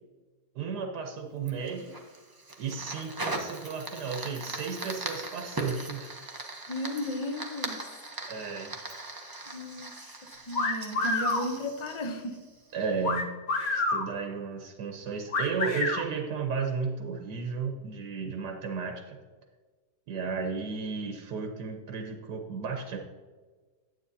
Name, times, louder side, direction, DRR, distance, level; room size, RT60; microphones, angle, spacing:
voice 1, 0.5-1.9 2.6-6.1 8.3-8.7 12.7-13.3 13.7-19.2 20.1-23.0, right 5 dB, 85° right, 3 dB, 1.4 m, -34 dB
Fire, 1.5-12.8, right 2 dB, 25° right, 0.5 m, -40 dB
voice 2, 6.7-7.8 9.5-9.9 10.5-12.4, left 1 dB, 35° left, 5 dB, 0.5 m, -34 dB
sound 1, 10.5-11.5 13.0-14.1 15.3-16.0, left 3 dB, 60° left, 1.6 m, -28 dB
9.3 x 8.9 x 2.7 m, 1.4 s
omnidirectional pair, 1.7 m